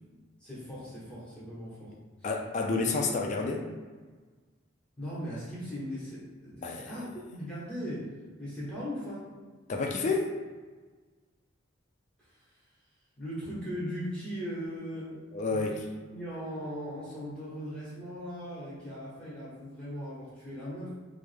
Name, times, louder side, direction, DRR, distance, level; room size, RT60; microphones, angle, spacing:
voice 1, 0.4-1.9 2.2-2.3 5.0-9.3 13.2-15.1 15.5-15.7 16.1-21.0, equal, 5° left, -10 dB, 1.0 m, -39 dB
voice 2, 2.2-3.6 6.6-7.1 9.7-10.3 15.3-15.9, left 3 dB, 40° left, 1 dB, 0.3 m, -30 dB
3.2 x 2.0 x 3.3 m, 1.4 s
head